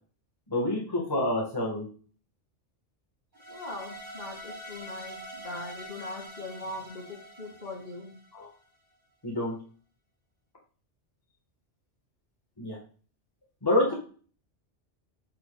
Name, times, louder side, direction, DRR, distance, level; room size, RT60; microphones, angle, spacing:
voice 1, 0.5-1.9 8.3-8.5 9.2-9.6 12.6-12.8 13.6-13.9, left 1 dB, 20° left, -2 dB, 1.4 m, -27 dB
sound 1, 3.3-8.6, right 1 dB, 40° right, 2.3 m, -45 dB
voice 2, 3.5-8.1 13.9-14.0, left 2 dB, 55° left, -2 dB, 2.4 m, -40 dB
7.9 x 6.0 x 2.3 m, 0.41 s
omnidirectional pair, 1.2 m